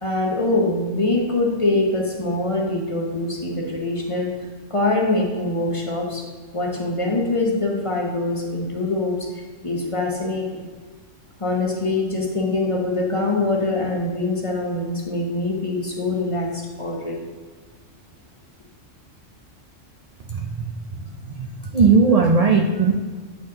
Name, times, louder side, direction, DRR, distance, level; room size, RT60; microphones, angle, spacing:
voice 1, 0.0-6.2 6.5-9.3 9.6-10.6 11.4-17.2, left 2 dB, 30° left, -1 dB, 0.9 m, -24 dB
voice 2, 20.3-20.7 21.2-21.5 21.7-22.9, right 4 dB, 65° right, 1 dB, 0.3 m, -17 dB
8.4 x 4.2 x 3.8 m, 1.5 s
omnidirectional pair, 1.3 m